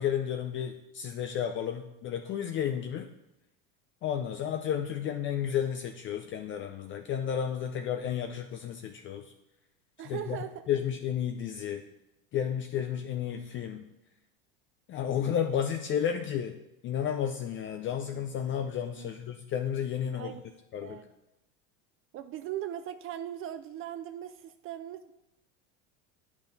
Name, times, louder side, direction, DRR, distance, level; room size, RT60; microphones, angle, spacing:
voice 1, 0.0-3.1 4.0-9.3 10.0-10.4 10.7-11.8 12.3-13.9 14.9-16.6 16.8-20.3 20.7-21.0, left 9 dB, 35° left, 6 dB, 0.5 m, -32 dB
voice 2, 10.0-10.6 18.9-19.1 20.1-20.4 20.8-21.1 22.1-25.1, right 11 dB, 40° right, 9 dB, 0.4 m, -39 dB
8.6 x 5.9 x 4.0 m, 0.92 s
supercardioid pair, 115°, 33 cm